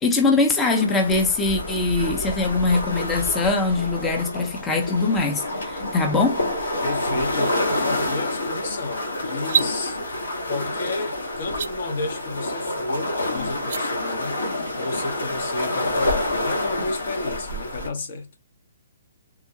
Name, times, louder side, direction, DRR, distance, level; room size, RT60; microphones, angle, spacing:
voice 1, 0.0-6.4, left 3 dB, 15° left, 0.6 m, -22 dB
sound 1, 0.6-17.9, left 1 dB, 80° left, 1.5 m, -28 dB
voice 2, 6.8-10.0 10.5-14.4 14.8-18.3, left 3 dB, 60° left, 0.9 m, -31 dB
sound 2, 9.4-9.7 11.5-11.7 13.5-13.8, right 7 dB, 60° right, 0.3 m, -24 dB
3.7 x 2.1 x 2.8 m
hypercardioid pair, 140°, 0 cm